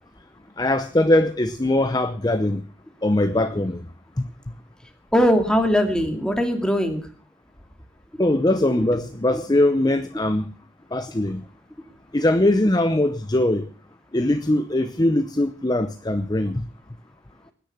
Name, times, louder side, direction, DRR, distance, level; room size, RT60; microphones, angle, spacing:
voice 1, 0.6-2.6 3.0-3.8 4.2-4.3 8.2-10.5 10.9-11.4 12.1-13.7 14.1-16.6, left 1 dB, 20° left, 0.7 m, -21 dB
voice 2, 5.1-7.0 8.8-9.0 9.3-9.4 12.1-12.2, equal, 5° left, 2.5 m, -21 dB
20.0 x 10.0 x 6.0 m
head